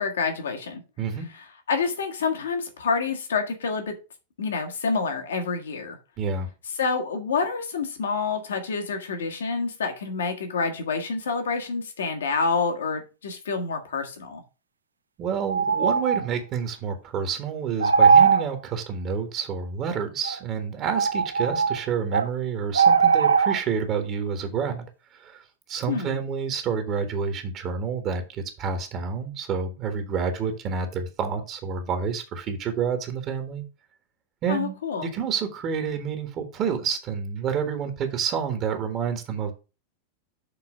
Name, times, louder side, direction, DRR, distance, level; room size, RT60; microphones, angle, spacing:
voice 1, 0.0-0.8 1.3-3.9 4.4-6.0 6.8-14.4 25.9-26.2 34.5-35.1, left 4 dB, 65° left, 4 dB, 1.6 m, -28 dB
voice 2, 6.2-6.5 15.2-24.8 25.1-33.6 34.4-34.7 35.0-39.5, right 6 dB, 35° right, 7 dB, 1.4 m, -29 dB
sound 1, 8.1-8.2 15.5-16.3 17.8-18.5 20.2-20.4 20.8-22.3 22.7-23.6, right 6 dB, 75° right, 0.4 m, -19 dB
6.8 x 4.0 x 6.2 m, 0.30 s
figure-of-eight pair, 90°, 0 cm